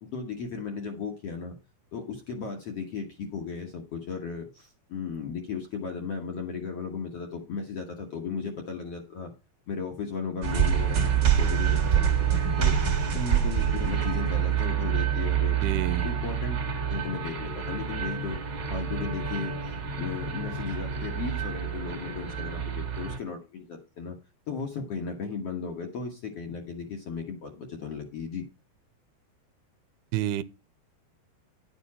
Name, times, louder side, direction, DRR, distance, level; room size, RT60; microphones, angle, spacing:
voice 1, 0.0-1.6 1.9-9.3 9.7-12.3 12.6-12.8 13.1-15.6 16.0-16.6 16.9-18.4 18.7-19.5 20.0-24.2 24.5-28.5, left 5 dB, 55° left, 1.8 m, -35 dB
sound 1, 10.4-23.2, right 8 dB, 40° right, 1.7 m, -27 dB
voice 2, 15.6-16.1 30.1-30.4, right 12 dB, 85° right, 2.6 m, -28 dB
11.0 x 7.2 x 4.3 m
omnidirectional pair, 4.6 m